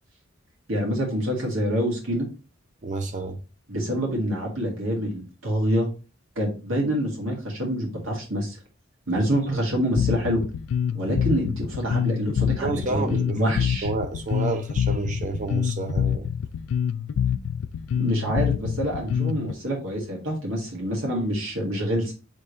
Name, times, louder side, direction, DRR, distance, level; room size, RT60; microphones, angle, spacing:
voice 1, 0.7-2.3 3.7-5.9 6.4-8.6 9.1-10.4 10.9-13.9 17.9-22.1, equal, 85° right, 1.8 m, -26 dB
voice 2, 2.8-3.4 9.5-9.6 12.6-16.3, right 3 dB, 40° right, 0.7 m, -30 dB
Bass guitar, 10.0-19.5, left 8 dB, 80° left, 0.3 m, -26 dB
3.5 x 3.2 x 4.0 m
head